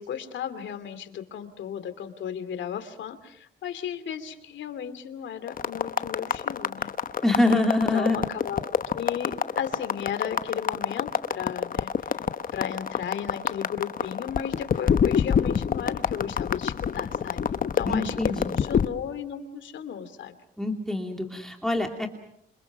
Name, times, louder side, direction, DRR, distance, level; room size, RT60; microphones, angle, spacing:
voice 1, 0.0-6.9 7.5-7.7 7.9-8.6 9.0-12.2 12.5-17.4 17.7-20.3, left 8 dB, 70° left, 10 dB, 2.8 m, -35 dB
sound 1, 5.5-18.9, left 7 dB, 45° left, 1.0 m, -27 dB
voice 2, 7.2-8.2 17.8-18.5 20.6-22.1, left 2 dB, ahead, 3 dB, 2.7 m, -25 dB
27.0 x 26.5 x 6.2 m, 0.77 s
cardioid pair, 90°, 20 cm